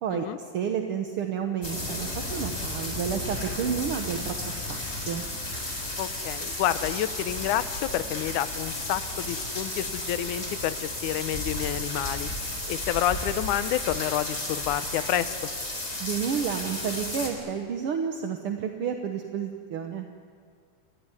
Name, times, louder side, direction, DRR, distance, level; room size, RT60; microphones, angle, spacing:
voice 1, 0.5-5.2 16.0-20.1, right 7 dB, 60° right, 4 dB, 1.6 m, -30 dB
sound 1, 1.6-17.3, left 1 dB, 20° left, 4.0 m, -33 dB
voice 2, 6.0-12.3 12.7-15.4, left 12 dB, 75° left, 12 dB, 2.2 m, -29 dB
28.5 x 15.5 x 10.0 m, 2.1 s
omnidirectional pair, 3.8 m